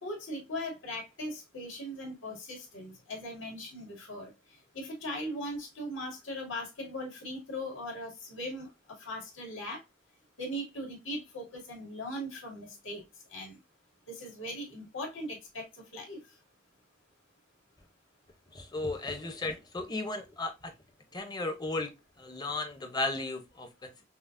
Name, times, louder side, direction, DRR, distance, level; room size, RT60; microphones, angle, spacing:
voice 1, 0.0-9.8 10.4-13.0 13.3-13.6 14.1-16.2, equal, 90° left, 2.0 m, -39 dB
voice 2, 18.5-20.5 21.1-21.9 22.2-23.7, left 2 dB, 20° left, 0.6 m, -34 dB
5.5 x 2.0 x 2.4 m
head